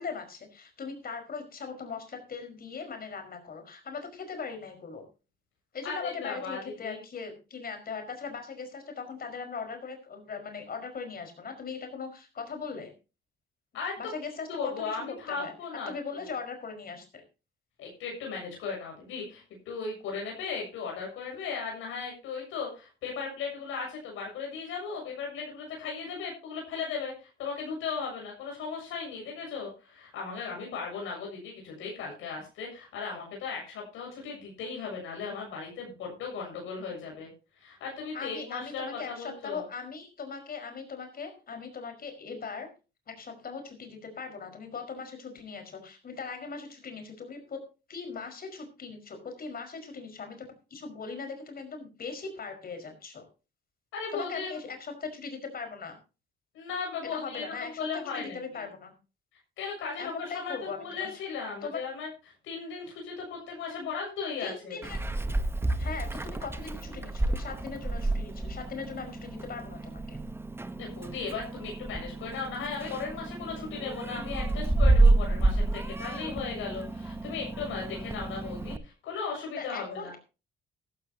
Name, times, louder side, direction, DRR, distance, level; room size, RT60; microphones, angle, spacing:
voice 1, 0.0-5.0 5.7-12.9 14.0-15.5 15.9-17.2 38.1-42.7 43.1-47.6 47.9-50.4 50.7-53.3 54.1-56.0 57.1-58.9 59.9-61.2 61.6-61.8 64.4-65.0 65.8-70.2 79.6-80.2, left 5 dB, 50° left, 6 dB, 5.2 m, -39 dB
voice 2, 5.8-7.0 13.7-14.0 14.5-16.3 17.8-37.3 37.6-39.6 53.9-54.5 56.5-58.7 59.6-62.1 62.4-64.8 70.8-80.2, left 5 dB, 90° left, 0 dB, 7.1 m, -37 dB
Meow, 64.8-78.8, right 2 dB, 10° right, 1.1 m, -29 dB
14.5 x 14.0 x 2.9 m, 0.31 s
cardioid pair, 90°, 20 cm